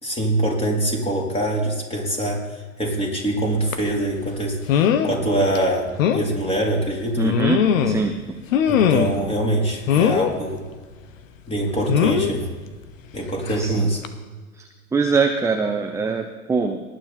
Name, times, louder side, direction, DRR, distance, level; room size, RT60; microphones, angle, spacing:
voice 1, 0.0-2.4 2.8-7.4 8.7-10.6 11.5-12.5 13.1-14.0, right 1 dB, 15° left, -1 dB, 3.9 m, -24 dB
sound 1, 3.7-3.9 4.7-5.1 5.5-5.6 6.0-6.2 7.2-8.1 8.5-9.2 9.9-10.3 11.9-12.3 13.5-13.7 14.0-14.1, left 8 dB, 60° left, 1.3 m, -19 dB
voice 2, 7.2-8.1 13.6-13.9 14.5-16.8, right 4 dB, 5° right, 4 dB, 0.7 m, -23 dB
19.5 x 9.2 x 4.4 m, 1.4 s
hypercardioid pair, 105°, 44 cm